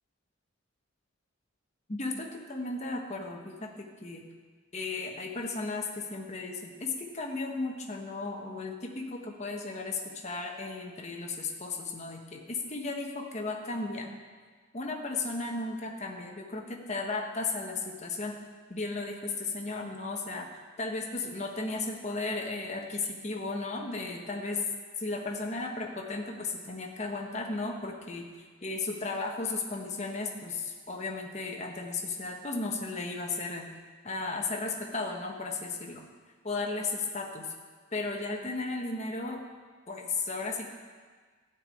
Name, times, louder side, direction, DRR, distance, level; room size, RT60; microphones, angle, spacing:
voice 1, 1.9-4.2 4.7-14.1 14.7-18.3 18.7-20.5 20.8-24.6 25.0-28.2 28.6-33.6 34.0-36.0 36.4-37.5 37.9-39.4 39.9-40.7, left 3 dB, 35° left, 1 dB, 1.1 m, -35 dB
12.5 x 4.7 x 8.5 m, 1.5 s
head